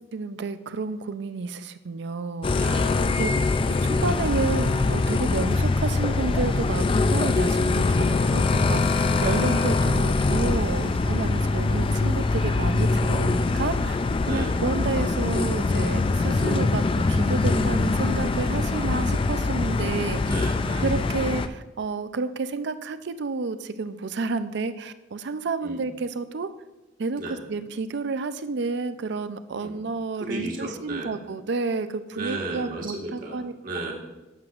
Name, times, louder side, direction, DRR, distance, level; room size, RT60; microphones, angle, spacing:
voice 1, 0.1-2.7 3.2-3.3 3.7-14.0 14.3-20.4 20.8-26.5 27.0-27.2 27.5-33.5, right 3 dB, 65° right, 12 dB, 0.5 m, -30 dB
sound 1, 2.4-21.5, left 3 dB, 30° left, 0.3 m, -23 dB
voice 2, 2.5-3.1 7.8-8.3 9.2-9.4 10.7-11.2 14.2-14.5 16.6-16.8 20.2-20.9 25.6-25.8 27.2-27.4 29.5-29.8 30.1-31.1 32.1-33.9, right 2 dB, 45° right, -1 dB, 1.6 m, -35 dB
11.0 x 7.7 x 2.5 m, 1.1 s
head